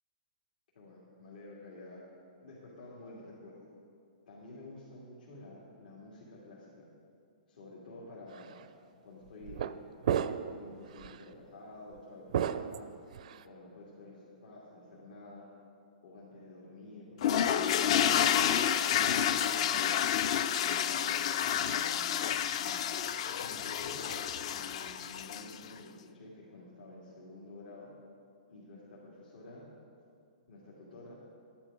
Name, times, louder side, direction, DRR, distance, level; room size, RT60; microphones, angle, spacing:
voice 1, 0.7-2.0 2.4-3.7 4.3-6.9 7.5-8.6 9.0-9.8 10.5-12.9 13.4-15.5 16.0-20.0 20.6-22.8 23.4-27.9 28.5-29.6 30.5-31.2, left 2 dB, 80° left, -7 dB, 2.7 m, -50 dB
sound 1, 8.3-8.5 9.4-9.8 10.0-10.6 11.0-11.2 12.3-13.4, right 9 dB, 50° right, 0.4 m, -32 dB
sound 2, 17.2-25.7, left 9 dB, 40° left, 0.4 m, -29 dB
12.0 x 10.5 x 5.0 m, 2.4 s
hypercardioid pair, 170°, 5 cm